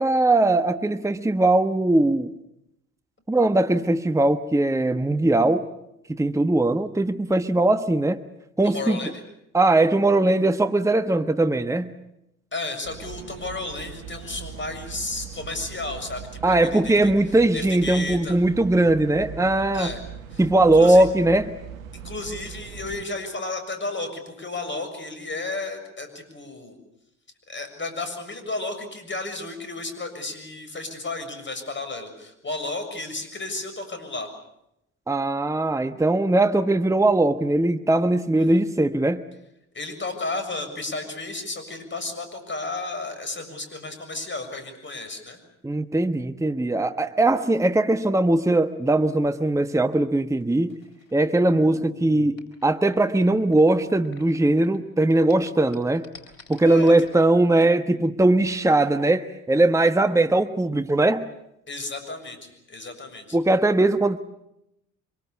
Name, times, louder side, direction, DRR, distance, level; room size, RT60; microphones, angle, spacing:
voice 1, 0.0-2.3 3.3-5.7 6.1-8.2 8.6-9.0 9.5-11.9 16.4-19.9 20.4-21.5 35.1-39.2 45.6-50.8 51.1-56.0 56.5-61.3 63.3-64.2, right 2 dB, 5° right, 10 dB, 1.2 m, -20 dB
voice 2, 8.6-9.1 12.5-17.1 17.5-18.4 19.7-20.0 20.3-20.4 20.7-21.1 21.9-26.8 27.5-34.3 38.4-38.6 39.7-45.4 56.7-56.9 61.7-63.4, left 2 dB, 30° left, 8 dB, 7.0 m, -33 dB
sound 1, 12.8-23.0, right 8 dB, 75° right, 1.4 m, -40 dB
sound 2, 50.4-54.8 55.0-57.2, left 3 dB, 80° left, 4.0 m, -46 dB
25.0 x 23.0 x 8.4 m, 0.82 s
hypercardioid pair, 55°, 40 cm